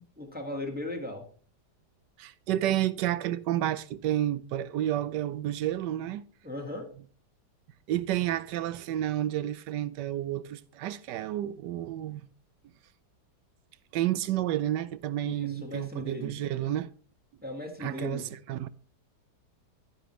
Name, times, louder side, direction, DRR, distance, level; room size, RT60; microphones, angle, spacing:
voice 1, 0.2-1.3 6.4-6.8 15.2-16.3 17.4-18.2, left 1 dB, 5° right, 1.5 m, -37 dB
voice 2, 2.2-6.2 7.9-12.3 13.9-16.9 17.8-18.7, right 12 dB, 85° right, 1.3 m, -30 dB
10.0 x 9.0 x 3.1 m
omnidirectional pair, 1.9 m